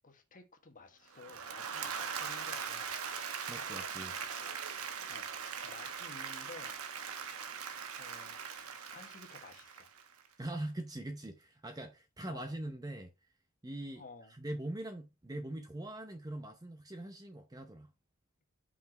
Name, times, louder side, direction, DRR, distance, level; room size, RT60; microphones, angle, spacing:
voice 1, 0.0-1.9 2.2-2.9 4.3-4.5 5.1-6.8 7.9-8.4 8.9-9.9 12.3-12.4 13.9-14.3, left 3 dB, 35° left, 1.4 m, -54 dB
Applause / Crowd, 1.1-10.3, right 6 dB, 75° right, 1.1 m, -41 dB
voice 2, 3.5-4.1 10.4-13.1 13.6-14.0 14.3-17.9, right 1 dB, 15° right, 0.7 m, -42 dB
5.8 x 5.0 x 4.4 m
head